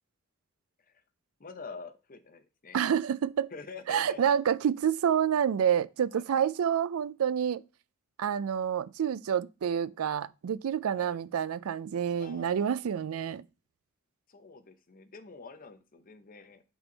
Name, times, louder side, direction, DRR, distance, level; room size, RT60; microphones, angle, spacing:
voice 1, 1.4-2.8 3.5-4.2 6.1-6.3 10.9-11.2 12.2-12.8 14.3-16.6, left 4 dB, 45° left, 0.8 m, -46 dB
voice 2, 2.7-3.5 3.9-7.6 8.2-13.4, right 8 dB, 90° right, 0.4 m, -28 dB
5.6 x 4.4 x 3.9 m
head